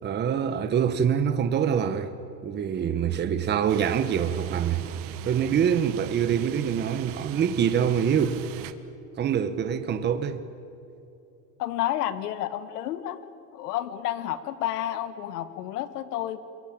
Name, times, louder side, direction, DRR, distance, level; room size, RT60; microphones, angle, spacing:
voice 1, 0.0-2.1 2.4-4.9 5.2-8.4 9.2-10.4, right 8 dB, 20° right, 1.2 m, -25 dB
sound 1, 3.7-8.7, right 13 dB, 45° right, 1.5 m, -40 dB
voice 2, 11.6-16.4, left 12 dB, 85° left, 1.7 m, -31 dB
28.0 x 23.0 x 9.0 m
supercardioid pair, 145°, 46 cm